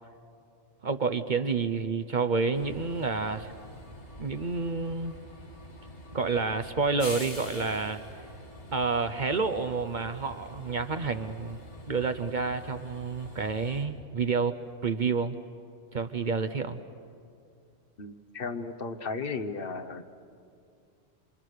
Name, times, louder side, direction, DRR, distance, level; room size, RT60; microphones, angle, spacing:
voice 1, 0.8-3.5 4.2-5.2 6.1-8.3 8.7-11.6 11.9-14.6 14.8-15.3 15.9-16.8, right 4 dB, 45° right, 8 dB, 0.8 m, -29 dB
Train, 2.5-13.8, left 1 dB, 70° left, 2.9 m, -46 dB
voice 2, 18.0-20.0, left 4 dB, 50° left, 7 dB, 1.2 m, -35 dB
27.5 x 26.5 x 6.6 m, 2.4 s
omnidirectional pair, 1.2 m